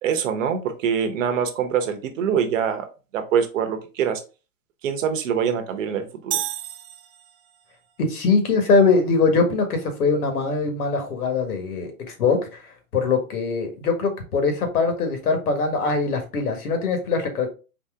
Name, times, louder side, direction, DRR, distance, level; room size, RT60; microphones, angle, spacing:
voice 1, 0.0-2.9 3.1-4.2 4.8-6.4, right 7 dB, 60° right, 8 dB, 1.0 m, -24 dB
sound 1, 6.3-7.7, right 12 dB, 40° right, 0.5 m, -31 dB
voice 2, 8.0-17.5, left 4 dB, 75° left, 6 dB, 1.7 m, -22 dB
4.3 x 2.8 x 3.6 m, 0.32 s
hypercardioid pair, 145°, 45 cm